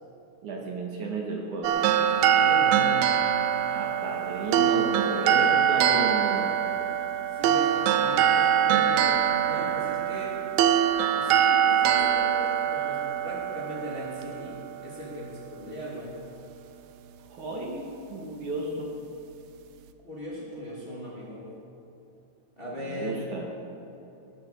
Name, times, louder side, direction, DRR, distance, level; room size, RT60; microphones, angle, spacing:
voice 1, 0.4-1.8 3.6-6.5 17.3-18.9 22.8-23.5, right 2 dB, 60° right, -1 dB, 2.8 m, -33 dB
sound 1, 1.6-14.9, right 9 dB, 80° right, 2.3 m, -23 dB
voice 2, 2.4-3.1 7.3-9.0 9.4-10.3 11.1-16.2 20.0-21.5 22.6-23.3, equal, 15° left, -6 dB, 2.5 m, -38 dB
20.0 x 9.3 x 6.8 m, 2.9 s
omnidirectional pair, 4.3 m